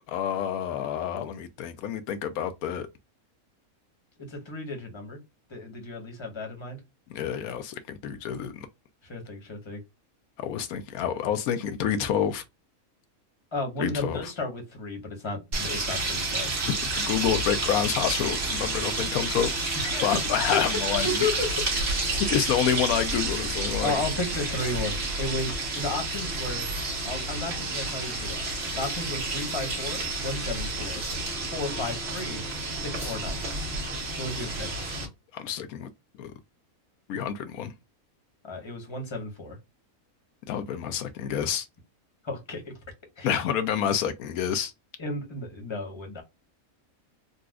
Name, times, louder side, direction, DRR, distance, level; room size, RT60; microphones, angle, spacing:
voice 1, 0.1-2.9 7.1-8.7 10.4-12.4 13.8-14.3 16.7-19.5 20.0-21.3 22.3-23.9 35.3-35.9 36.2-36.3 37.1-37.7 40.5-41.7 43.2-44.7, left 8 dB, 85° left, 1.1 m, -28 dB
voice 2, 4.2-5.2 5.5-6.8 9.0-9.8 13.5-16.6 19.8-20.2 20.5-20.6 20.9-21.6 22.2-22.5 23.8-26.7 27.0-28.5 28.8-31.0 31.5-32.4 32.7-33.4 34.2-34.7 38.4-39.6 42.2-42.7 43.2-43.3 45.0-46.2, left 2 dB, 20° left, 1.1 m, -33 dB
sound 1, 15.5-35.1, right 2 dB, 50° right, 1.5 m, -30 dB
4.0 x 2.4 x 2.3 m
omnidirectional pair, 1.5 m